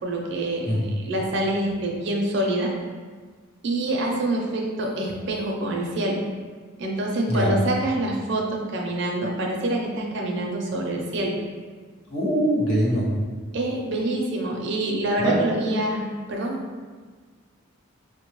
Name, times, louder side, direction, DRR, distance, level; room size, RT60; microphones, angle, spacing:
voice 1, 0.0-2.7 3.6-6.2 6.8-11.4 13.5-16.6, right 1 dB, 55° right, -1 dB, 0.6 m, -26 dB
voice 2, 12.1-13.1 15.2-15.4, equal, 75° left, -5 dB, 1.0 m, -22 dB
4.6 x 2.2 x 3.0 m, 1.5 s
head